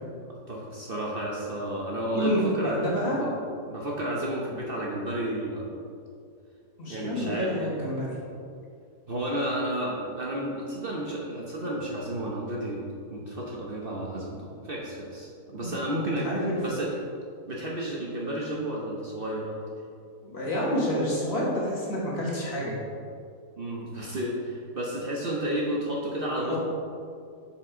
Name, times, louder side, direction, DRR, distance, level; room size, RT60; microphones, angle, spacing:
voice 1, 0.3-2.8 3.2-3.4 3.7-5.7 6.9-7.7 9.1-16.3 16.6-16.9 17.5-19.6 23.6-26.6, right 1 dB, 45° right, -3 dB, 1.0 m, -32 dB
voice 2, 2.1-3.4 6.8-8.2 15.6-16.6 20.2-22.8 26.4-26.6, equal, 45° left, -5 dB, 1.8 m, -28 dB
7.0 x 4.9 x 5.0 m, 2.4 s
omnidirectional pair, 1.5 m